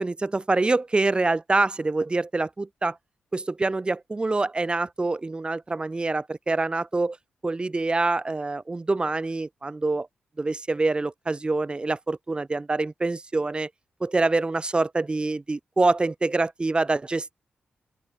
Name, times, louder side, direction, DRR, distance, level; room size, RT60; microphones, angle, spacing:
voice 1, 0.0-3.0 3.3-7.2 7.4-10.1 10.4-13.7 14.0-17.4, right 3 dB, 30° right, 1.6 m, -25 dB
open air
cardioid pair, 70°, 3 cm